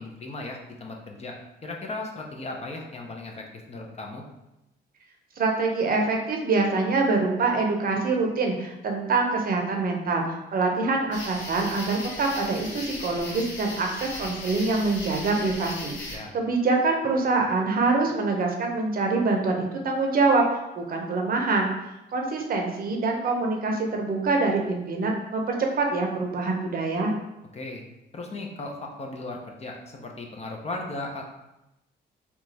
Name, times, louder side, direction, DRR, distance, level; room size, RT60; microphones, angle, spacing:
voice 1, 0.0-1.4 1.6-4.2 16.1-16.4 27.5-27.8 28.1-31.3, left 2 dB, 35° left, 1 dB, 0.6 m, -36 dB
voice 2, 5.4-10.2 10.5-20.4 20.8-21.7 22.1-27.1, right 3 dB, 45° right, 2 dB, 0.7 m, -25 dB
sound 1, 11.1-16.2, left 2 dB, 70° left, 0.8 m, -37 dB
2.9 x 2.3 x 4.0 m, 0.92 s
cardioid pair, 90°, 20 cm